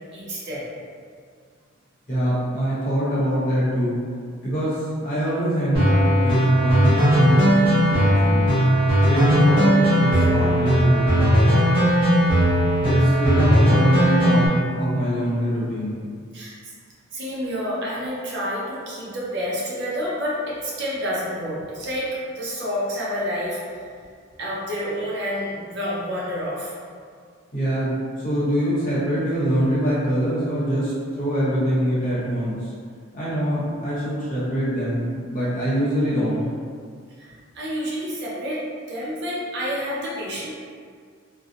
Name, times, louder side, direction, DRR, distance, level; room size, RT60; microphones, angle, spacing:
voice 1, 0.1-0.7 16.3-16.5 17.1-22.1 22.3-23.6 24.4-26.7 37.2-40.5, equal, 55° right, -6 dB, 0.6 m, -29 dB
voice 2, 2.1-4.0 4.4-7.6 7.9-8.6 9.0-11.3 12.8-16.0 27.5-30.9 31.2-32.6 33.1-36.5, equal, 40° left, -9 dB, 0.9 m, -24 dB
sound 1, 5.7-14.5, equal, 25° right, 0.9 m, -18 dB
2.6 x 2.0 x 2.7 m, 2.1 s
head